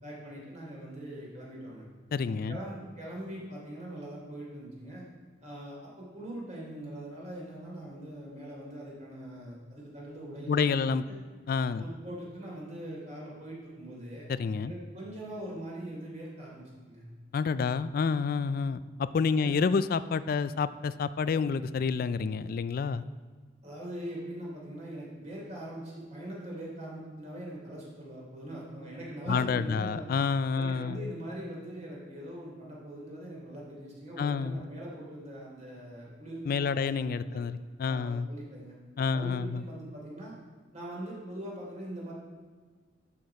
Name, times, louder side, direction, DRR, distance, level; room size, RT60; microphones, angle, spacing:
voice 1, 0.0-1.8 2.5-5.0 5.4-11.2 11.8-14.3 14.6-17.1 19.3-19.5 23.6-30.0 30.5-36.9 37.2-37.4 37.9-38.8 39.1-40.3 40.7-42.1, right 1 dB, 40° right, -4 dB, 3.2 m, -42 dB
voice 2, 2.1-2.6 10.5-11.0 11.5-11.8 14.3-14.7 17.3-23.0 29.3-31.1 34.2-34.6 36.5-38.3 39.0-39.6, left 5 dB, 50° left, 15 dB, 0.3 m, -29 dB
11.5 x 6.1 x 4.8 m, 1.5 s
head